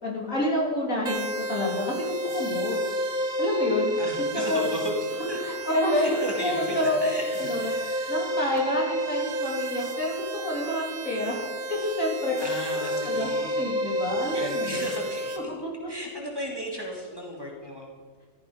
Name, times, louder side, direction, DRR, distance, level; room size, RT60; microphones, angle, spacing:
voice 1, 0.0-2.8 3.4-3.9 4.2-4.7 5.4-7.1 7.4-7.7 8.1-11.4 11.7-12.4 12.7-13.3 13.6-14.8 15.5-15.9, left 1 dB, 65° left, -3 dB, 4.0 m, -28 dB
sound 1, 1.1-15.4, equal, 70° right, 2.1 m, -31 dB
voice 2, 4.0-4.9 5.3-5.4 5.9-8.1 12.4-13.6 14.3-15.5 15.9-17.9, equal, 15° right, -2 dB, 2.9 m, -35 dB
14.5 x 14.5 x 5.4 m, 1.5 s
omnidirectional pair, 1.5 m